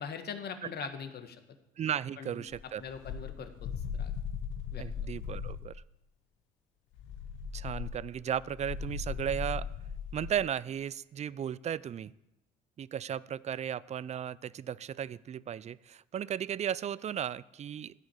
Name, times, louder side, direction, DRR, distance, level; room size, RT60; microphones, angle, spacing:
voice 1, 0.0-1.4 2.2-2.4 2.8-3.7 4.0-4.1 4.7-4.8, left 7 dB, 50° left, 8 dB, 1.4 m, -41 dB
voice 2, 1.8-2.8 4.8-5.8 7.5-9.7 10.1-12.1 12.8-17.9, right 9 dB, 35° right, 20 dB, 0.4 m, -35 dB
sound 1, 2.5-5.7 6.9-10.4, left 6 dB, 70° left, 1.1 m, -38 dB
13.0 x 5.1 x 8.4 m, 0.92 s
hypercardioid pair, 65°, 21 cm